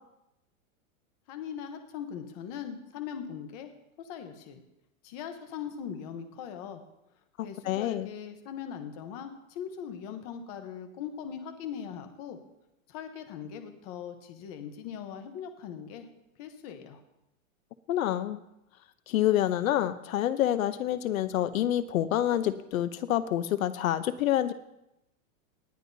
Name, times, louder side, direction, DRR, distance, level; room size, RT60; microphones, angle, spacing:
voice 1, 1.3-3.7 4.0-4.6 5.0-6.8 7.4-12.4 12.9-16.1 16.4-17.0, left 8 dB, 25° left, 7 dB, 0.9 m, -40 dB
voice 2, 7.4-8.1 17.9-18.4 19.1-24.5, left 12 dB, 70° left, 13 dB, 0.8 m, -27 dB
19.0 x 10.5 x 2.7 m, 0.88 s
supercardioid pair, 175°, 42 cm